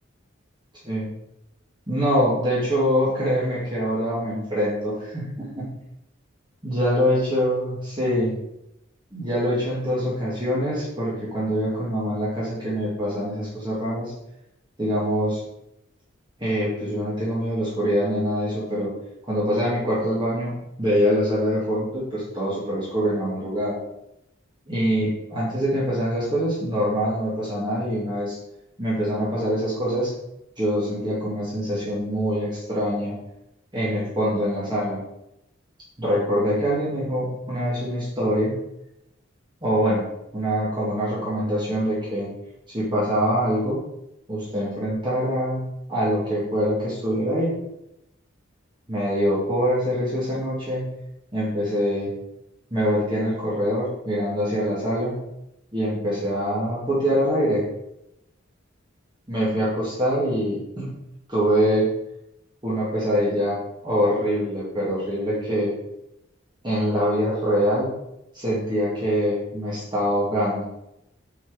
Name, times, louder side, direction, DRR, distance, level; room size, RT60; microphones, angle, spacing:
voice 1, 1.9-5.7 6.6-8.4 9.1-14.1 14.8-15.4 16.4-18.9 19.3-20.5 20.8-23.8 24.7-28.4 28.8-30.1 30.6-33.2 33.7-35.0 36.0-38.6 39.6-40.0 40.3-42.3 42.7-43.9 44.3-45.6 45.9-47.6 48.9-50.9 51.3-52.1 52.7-55.2 55.7-57.6 59.3-60.9 61.3-61.9 62.6-63.6 63.8-65.7 66.6-67.9 68.3-70.6, equal, 20° right, -8 dB, 1.8 m, -24 dB
5.5 x 4.4 x 4.9 m, 0.84 s
head